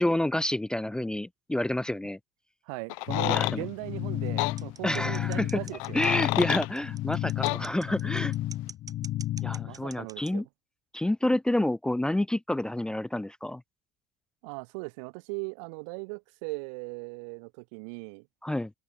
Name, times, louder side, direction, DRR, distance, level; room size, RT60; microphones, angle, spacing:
voice 1, 0.0-2.2 3.2-3.6 4.8-5.6 5.9-8.3 9.4-10.4 10.9-13.6 18.4-18.7, left 1 dB, 5° left, 0.6 m, -28 dB
voice 2, 2.6-6.0 9.7-10.5 14.4-18.3, right 31 dB, 85° right, 3.2 m, -38 dB
sound 1, 2.9-3.6 4.4-4.6 5.7-6.7 7.4-7.6, left 31 dB, 85° left, 2.3 m, -29 dB
sound 2, 3.1-9.8, left 14 dB, 50° left, 3.7 m, -32 dB
sound 3, 4.4-10.3, right 6 dB, 20° right, 6.7 m, -45 dB
open air
cardioid pair, 135°, 16 cm